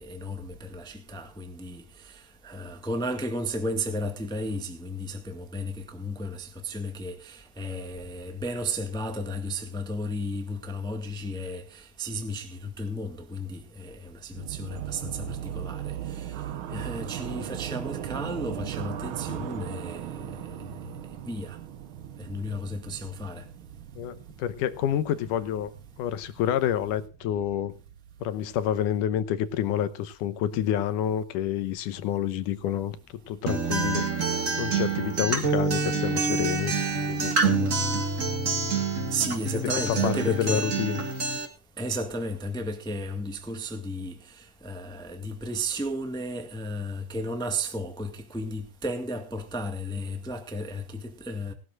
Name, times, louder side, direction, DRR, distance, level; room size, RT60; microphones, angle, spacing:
voice 1, 0.0-16.3 16.7-20.6 21.3-21.6 22.2-23.4 39.1-40.7 41.8-51.5, equal, 5° left, 0.8 m, -34 dB
sound 1, 14.3-29.2, right 11 dB, 75° right, 1.2 m, -38 dB
voice 2, 24.0-25.7 26.0-27.7 28.2-33.0 33.3-34.0 34.6-36.7 37.1-37.8 39.9-41.0, left 10 dB, 90° left, 2.5 m, -28 dB
Acoustic guitar, 33.5-41.4, right 4 dB, 30° right, 1.9 m, -27 dB
19.0 x 13.0 x 2.5 m
omnidirectional pair, 3.6 m